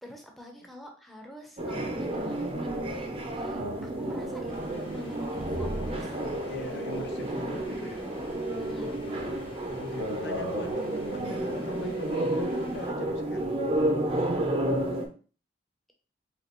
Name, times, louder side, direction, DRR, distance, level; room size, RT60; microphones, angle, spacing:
voice 1, 0.0-6.1 8.6-9.0, left 1 dB, ahead, 2 dB, 0.7 m, -46 dB
sound 1, 1.6-15.0, right 1 dB, 35° right, 0.7 m, -31 dB
sound 2, 4.5-12.9, left 2 dB, 30° left, 0.9 m, -50 dB
voice 2, 6.5-8.0 9.8-13.4, left 3 dB, 65° left, 7 dB, 0.5 m, -42 dB
5.1 x 2.9 x 3.0 m, 0.39 s
head